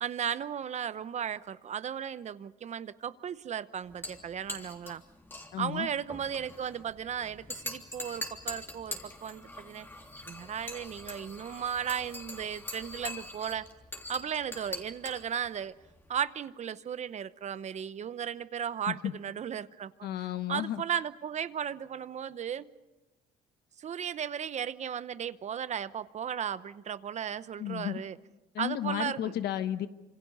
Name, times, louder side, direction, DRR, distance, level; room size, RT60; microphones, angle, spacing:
voice 1, 0.0-5.0 5.6-9.9 10.3-13.7 14.1-15.7 16.1-20.1 20.5-22.7 23.8-28.2 28.6-29.3, right 8 dB, 45° right, 15 dB, 0.9 m, -35 dB
sound 1, 3.8-16.2, left 1 dB, 15° left, 3.3 m, -43 dB
voice 2, 5.5-5.9 18.9-19.1 20.0-20.8 27.6-28.0 28.5-29.9, left 11 dB, 75° left, 11 dB, 1.2 m, -33 dB
26.5 x 26.5 x 5.5 m, 1.0 s
cardioid pair, 110°, 17 cm